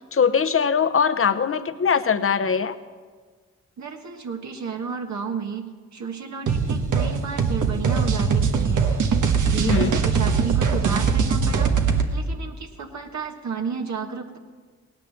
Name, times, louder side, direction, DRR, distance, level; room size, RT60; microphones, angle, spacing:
voice 1, 0.1-2.8 9.6-10.0, left 6 dB, 45° left, 11 dB, 1.0 m, -21 dB
voice 2, 3.8-8.9 9.3-14.4, right 5 dB, 60° right, 3 dB, 1.5 m, -33 dB
sound 1, 6.5-12.1, right 5 dB, 80° right, 1.4 m, -21 dB
17.5 x 9.8 x 7.3 m, 1.5 s
supercardioid pair, 50°, 31 cm